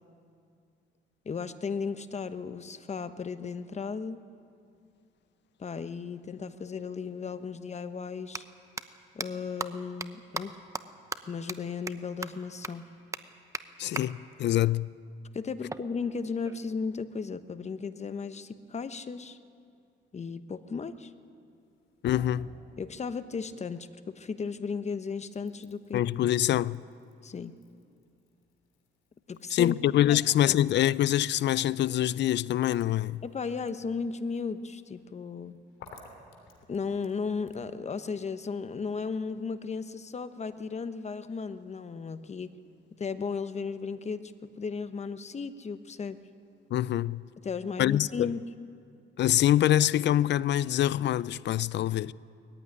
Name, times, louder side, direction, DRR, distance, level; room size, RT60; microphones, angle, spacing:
voice 1, 1.2-4.2 5.6-8.4 9.1-10.6 11.3-12.8 15.3-19.4 20.1-21.1 22.8-26.0 27.2-27.5 29.3-29.8 30.1-30.2 30.4-30.6 33.2-35.6 36.7-42.5 43.0-46.2 47.4-48.4, left 5 dB, 35° left, 1.0 m, -35 dB
sound 1, 7.0-7.1 8.2-8.4 8.8-8.9 9.2-9.3 9.6-9.7 10.0-10.1 10.3-10.4 10.7-10.8 11.1-11.2 11.5-11.6 11.9-12.0 12.2-12.3 12.6-12.7 13.1-13.2 13.5-13.6 14.0-14.1 15.7-16.7, right 3 dB, 15° right, 0.9 m, -36 dB
voice 2, 13.8-14.9 22.0-22.5 25.9-26.8 29.5-33.2 46.7-47.2 47.8-48.3 49.2-52.1, left 12 dB, 65° left, 0.5 m, -25 dB
sound 2, 21.5-24.1 24.5-37.7, left 4 dB, 90° left, 3.1 m, -56 dB
20.0 x 15.0 x 9.8 m
cardioid pair, 90°, 20 cm